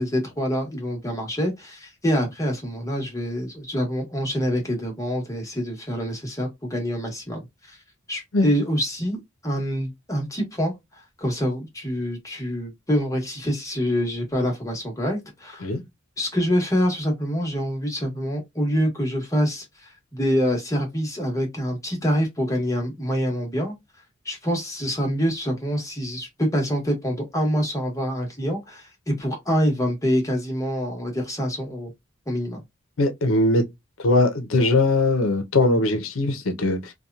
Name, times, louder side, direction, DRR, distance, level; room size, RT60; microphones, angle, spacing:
voice 1, 0.0-7.8 8.1-9.2 9.4-15.7 16.2-23.7 24.2-31.9 32.3-32.6, equal, 15° left, 1.1 m, -26 dB
voice 2, 33.0-33.6 34.0-36.9, left 2 dB, 90° left, 0.6 m, -20 dB
2.8 x 2.2 x 2.2 m
head